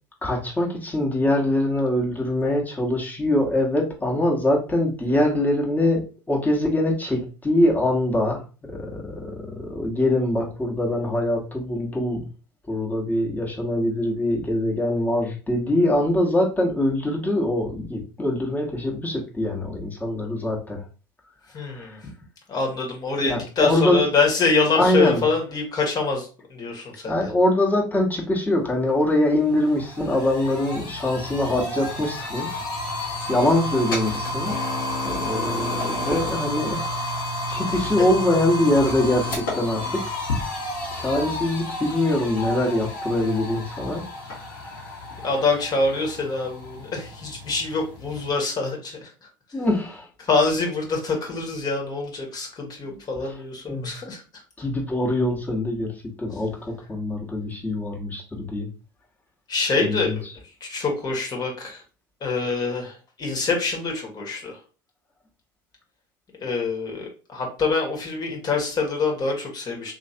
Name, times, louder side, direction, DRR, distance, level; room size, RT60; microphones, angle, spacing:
voice 1, 0.2-12.2 12.7-20.8 21.7-22.0 23.2-24.0 24.7-25.2 27.0-32.5 33.3-34.5 35.0-40.0 40.5-40.6 40.9-44.0 44.3-44.9 49.5-50.1 52.9-53.0 53.2-53.3 53.7-53.9 54.6-55.9 56.2-58.7 59.8-60.2, left 1 dB, 15° left, -1 dB, 1.3 m, -23 dB
voice 2, 21.5-22.0 22.5-27.3 45.2-49.1 50.2-54.4 59.5-60.1 60.6-61.8 62.2-64.6 66.4-69.9, left 4 dB, 40° left, 1 dB, 1.5 m, -25 dB
sound 1, 28.9-29.0 29.3-48.3, left 1 dB, 80° left, 1.6 m, -31 dB
3.3 x 3.1 x 2.8 m, 0.36 s
hypercardioid pair, 70°, 11 cm